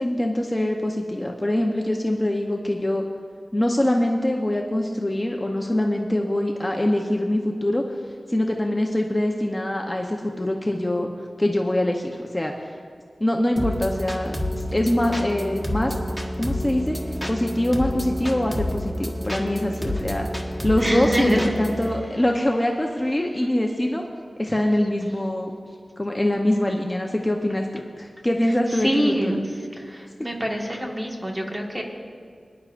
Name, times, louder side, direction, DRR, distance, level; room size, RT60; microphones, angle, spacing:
voice 1, 0.0-3.0 3.5-7.8 8.3-11.1 11.4-12.5 13.2-14.4 14.7-15.9 16.4-17.0 17.3-20.3 20.6-24.0 24.4-25.6 26.0-29.3, left 1 dB, 20° left, 1 dB, 0.8 m, -23 dB
sound 1, 13.6-21.9, left 1 dB, ahead, 1.4 m, -29 dB
voice 2, 20.8-21.4 28.8-29.4 29.8-31.8, equal, 20° right, 0 dB, 1.7 m, -24 dB
23.5 x 10.5 x 2.5 m, 2.1 s
wide cardioid pair, 75°, 0 cm